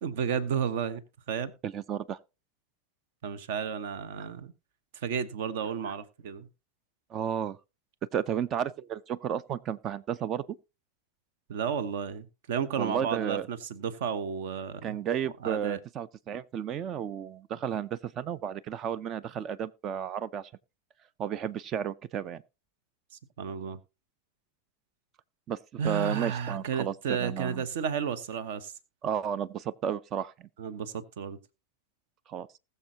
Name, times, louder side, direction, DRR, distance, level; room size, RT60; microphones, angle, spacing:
voice 1, 0.0-1.0 1.3-1.5 3.2-4.5 5.0-6.5 11.5-15.0 15.4-15.8 23.4-23.8 25.8-28.7 30.6-31.4, right 7 dB, 55° right, 1.0 m, -32 dB
voice 2, 1.6-2.2 5.9-6.0 7.1-7.6 8.1-10.6 12.8-13.5 14.8-20.5 21.2-22.4 25.5-25.6 25.8-27.6 29.0-30.5 32.3-32.5, right 8 dB, 30° right, 0.5 m, -33 dB
20.0 x 6.8 x 2.8 m
figure-of-eight pair, 90°, 0 cm